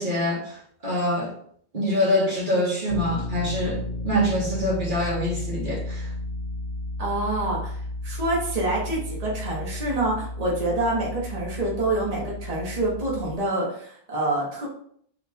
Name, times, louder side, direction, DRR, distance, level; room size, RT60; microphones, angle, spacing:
voice 1, 0.0-1.3 1.7-6.1, equal, 55° right, -3 dB, 1.3 m, -25 dB
sound 1, 2.9-13.4, left 2 dB, 90° left, 0.9 m, -33 dB
voice 2, 7.0-7.8 8.0-14.7, right 2 dB, 40° right, -4 dB, 1.1 m, -27 dB
4.1 x 2.3 x 4.2 m, 0.63 s
omnidirectional pair, 1.0 m